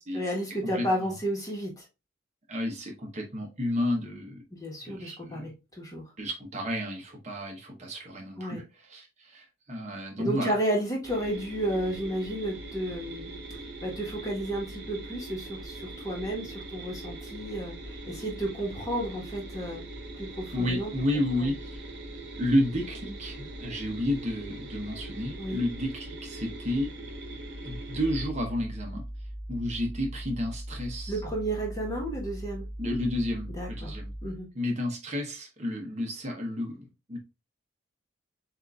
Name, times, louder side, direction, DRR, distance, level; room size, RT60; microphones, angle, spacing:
voice 1, 0.1-1.8 4.5-6.0 8.4-8.6 10.2-13.3 13.8-19.8 20.1-20.9 21.4-21.5 25.4-25.6 31.1-32.6 33.5-33.9 34.2-34.5, right 1 dB, 20° left, -1 dB, 1.3 m, -32 dB
voice 2, 0.7-1.1 2.5-4.4 4.8-5.5 6.2-10.5 20.5-21.9 22.4-26.9 27.6-29.0 29.5-31.1 32.8-34.1 34.5-37.2, left 1 dB, 35° right, 1 dB, 1.0 m, -31 dB
sound 1, 11.0-28.3, right 1 dB, 60° right, 1.3 m, -41 dB
sound 2, 27.7-34.5, right 1 dB, ahead, 1.2 m, -39 dB
7.2 x 2.6 x 2.4 m, 0.27 s
head